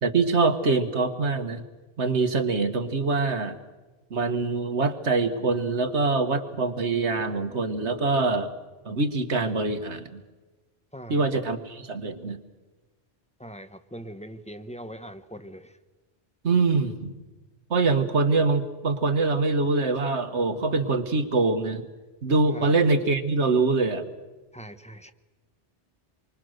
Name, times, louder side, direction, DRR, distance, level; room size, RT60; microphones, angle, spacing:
voice 1, 0.0-1.6 2.0-3.6 4.1-8.5 8.8-10.2 11.1-12.4 16.4-17.1 17.7-21.8 22.2-24.1, right 3 dB, 70° right, 8 dB, 1.8 m, -24 dB
voice 2, 10.9-11.2 13.4-15.8 22.5-22.7 24.5-25.1, equal, 5° left, 10 dB, 1.2 m, -41 dB
27.0 x 24.5 x 6.6 m, 1.2 s
omnidirectional pair, 1.2 m